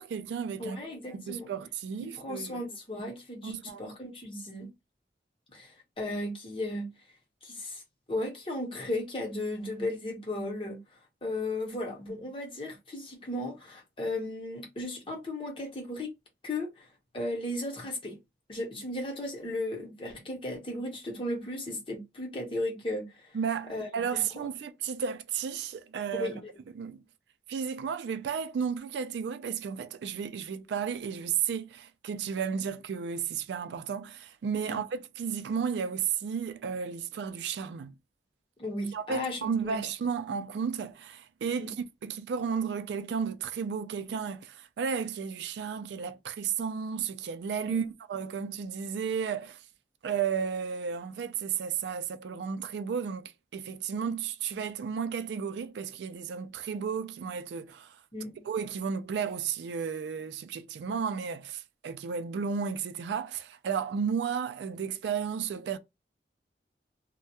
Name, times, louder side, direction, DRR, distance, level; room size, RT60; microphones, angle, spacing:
voice 1, 0.0-0.8 1.1-2.6 3.4-3.8 23.3-26.3 26.8-27.0 27.5-37.9 38.9-41.7 42.0-49.6 50.0-58.0 58.5-65.8, right 6 dB, 80° right, 0.3 m, -33 dB
voice 2, 0.6-1.5 2.0-4.7 5.5-6.9 7.4-7.8 8.1-10.8 11.2-16.1 16.4-16.9 17.1-18.2 18.5-23.2 23.7-24.5 26.1-26.5 34.7-34.8 38.6-39.8 41.6-41.8 47.7-47.8 58.1-58.4, left 1 dB, 30° left, 0.7 m, -35 dB
2.2 x 2.0 x 2.8 m
head